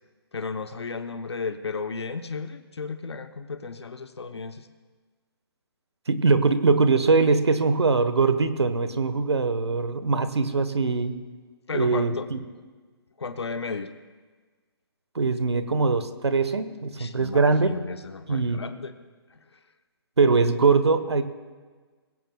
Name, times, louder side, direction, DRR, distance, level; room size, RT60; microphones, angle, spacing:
voice 1, 0.3-4.7 11.7-12.3 13.2-13.9 17.0-18.9 19.3-19.6, left 4 dB, 85° left, 9 dB, 0.8 m, -34 dB
voice 2, 6.1-11.2 11.7-12.4 15.1-17.8 18.3-18.6 20.2-21.2, right 4 dB, 90° right, 11 dB, 1.1 m, -22 dB
21.0 x 16.5 x 2.3 m, 1.4 s
hypercardioid pair, 145°, 14 cm